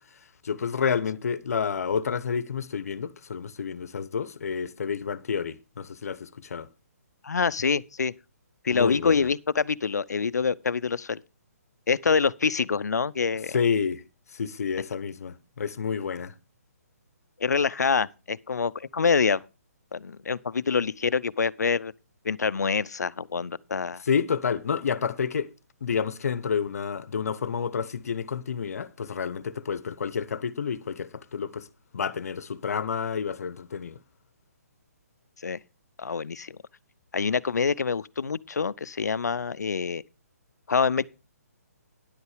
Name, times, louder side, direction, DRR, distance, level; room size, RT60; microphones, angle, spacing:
voice 1, 0.4-6.7 8.7-9.2 13.5-14.0 14.3-16.3 24.0-25.5 25.8-31.7 31.9-34.0, left 6 dB, 65° left, 0.9 m, -29 dB
voice 2, 7.2-8.1 8.6-11.2 11.9-13.6 17.4-19.4 19.9-21.9 22.2-24.0 35.4-35.6 36.0-36.6 37.1-40.0 40.7-41.0, left 5 dB, 85° left, 0.6 m, -26 dB
10.5 x 8.2 x 4.9 m
hypercardioid pair, 150°, 9 cm